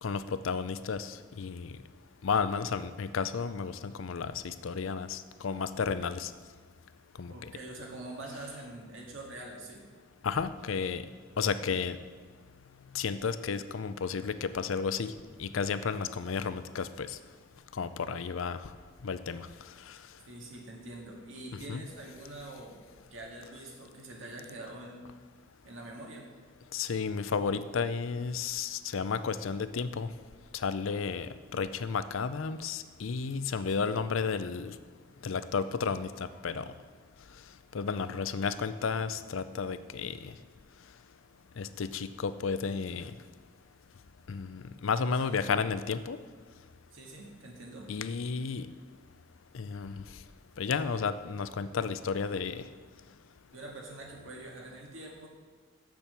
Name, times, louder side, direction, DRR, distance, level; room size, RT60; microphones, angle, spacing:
voice 1, 0.0-1.7 2.2-6.3 7.2-7.3 10.2-11.0 11.4-12.0 12.9-15.1 15.4-17.2 17.8-18.6 19.0-19.5 21.5-21.8 26.7-30.1 30.5-34.7 35.2-36.6 37.7-40.3 41.6-43.1 44.3-46.2 47.9-48.7 49.5-50.0 50.6-52.6, left 5 dB, 75° left, 13 dB, 0.5 m, -32 dB
voice 2, 7.3-9.8 20.3-22.8 23.1-25.1 25.6-26.3 33.8-34.0 45.2-45.4 46.9-47.9 53.5-55.3, right 2 dB, 75° right, -1 dB, 1.9 m, -45 dB
7.6 x 7.1 x 6.8 m, 1.5 s
head